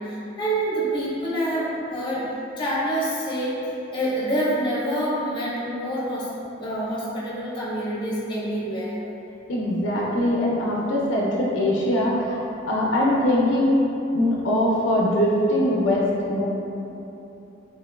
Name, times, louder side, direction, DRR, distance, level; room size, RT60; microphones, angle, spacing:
voice 1, 0.0-2.3 2.6-6.3 6.6-9.0, right 1 dB, 25° left, -8 dB, 0.7 m, -27 dB
voice 2, 9.5-12.4 12.7-13.8 14.1-16.4, left 1 dB, 75° left, -4 dB, 0.4 m, -22 dB
3.5 x 2.9 x 2.2 m, 2.9 s
head